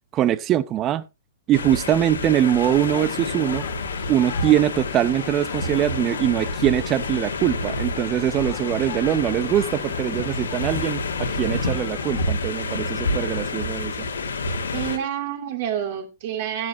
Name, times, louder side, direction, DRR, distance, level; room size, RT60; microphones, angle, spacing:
voice 1, 0.1-1.0 1.5-3.6 4.1-14.1, right 12 dB, 30° right, 0.7 m, -22 dB
sound 1, 1.5-15.0, left 2 dB, 75° left, 2.1 m, -28 dB
sound 2, 2.4-12.3, left 15 dB, 45° left, 1.7 m, -39 dB
voice 2, 14.7-16.7, right 10 dB, 50° right, 2.9 m, -28 dB
14.0 x 10.5 x 2.9 m
figure-of-eight pair, 110°, 0 cm